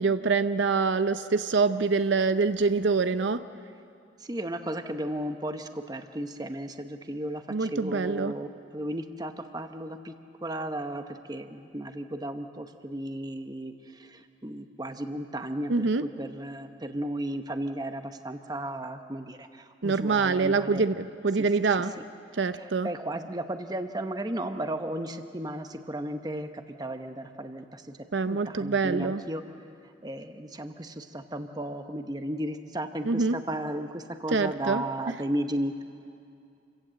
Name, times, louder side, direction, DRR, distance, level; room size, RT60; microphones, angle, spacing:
voice 1, 0.0-3.5 7.5-8.3 15.7-16.0 19.8-21.9 22.3-22.9 28.1-29.2 33.1-33.4 34.3-34.8, right 4 dB, 75° right, 11 dB, 0.6 m, -25 dB
voice 2, 4.2-10.1 10.4-20.8 22.0-22.1 22.6-27.9 28.2-29.4 30.0-35.8, right 1 dB, 20° right, 7 dB, 0.9 m, -34 dB
28.0 x 16.5 x 7.6 m, 2.5 s
head